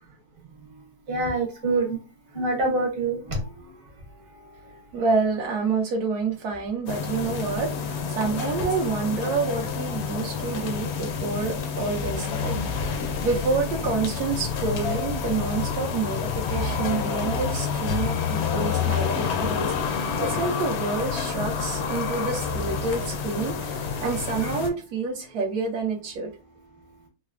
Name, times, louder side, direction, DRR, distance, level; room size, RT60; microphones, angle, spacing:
voice 1, 1.1-2.0 2.3-3.8 4.3-4.8 17.9-18.1, right 2 dB, 60° right, 1 dB, 1.4 m, -27 dB
voice 2, 4.9-26.3, right 4 dB, 85° right, 0 dB, 1.2 m, -28 dB
sound 1, 6.9-24.7, left 6 dB, 70° left, 0.6 m, -28 dB
3.9 x 2.0 x 2.4 m, 0.31 s
omnidirectional pair, 1.7 m